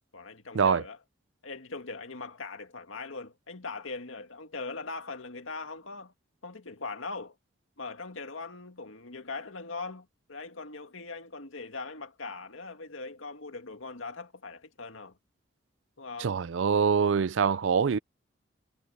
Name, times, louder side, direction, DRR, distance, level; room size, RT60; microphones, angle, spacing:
voice 1, 0.1-1.0 1.4-6.1 6.4-7.3 7.8-15.2 16.0-16.4, left 3 dB, 85° left, 2.1 m, -40 dB
voice 2, 16.2-18.0, right 6 dB, 70° right, 0.4 m, -24 dB
head